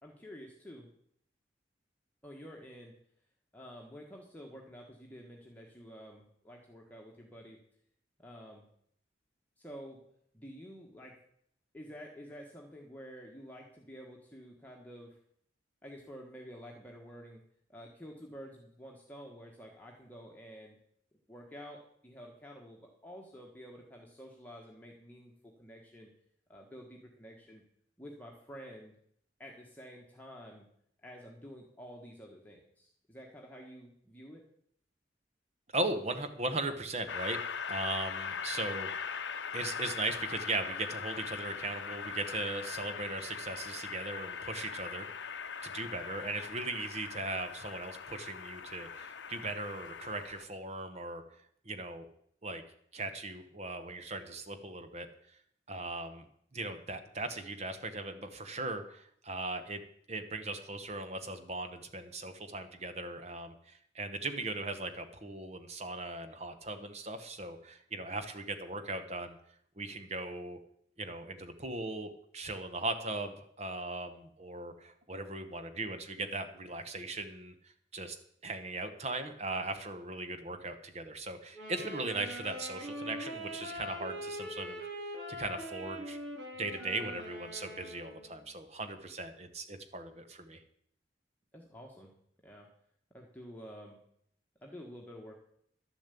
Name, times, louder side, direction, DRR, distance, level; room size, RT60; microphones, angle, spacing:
voice 1, 0.0-0.9 2.2-2.9 3.5-7.6 8.2-8.6 9.6-10.0 10.3-11.2 11.7-15.2 15.8-17.4 17.7-20.8 21.3-26.1 26.5-27.6 28.0-28.9 29.4-30.7 31.0-34.4 91.5-92.1 92.4-92.7 93.1-94.0 94.6-95.4, equal, 10° left, -1 dB, 1.3 m, -50 dB
voice 2, 35.7-37.4 37.7-39.2 39.5-45.1 45.6-51.2 51.6-52.1 52.4-52.6 52.9-55.4 55.7-56.3 56.5-59.8 60.1-69.4 69.8-70.6 71.0-78.2 78.4-84.8 85.4-86.2 86.6-90.6, right 2 dB, 35° right, 9 dB, 1.0 m, -38 dB
Train, 37.1-50.4, left 6 dB, 70° left, 0.8 m, -41 dB
Wind instrument woodwind instrument, 81.5-88.4, equal, 70° right, 3.1 m, -42 dB
11.5 x 7.2 x 8.3 m, 0.68 s
head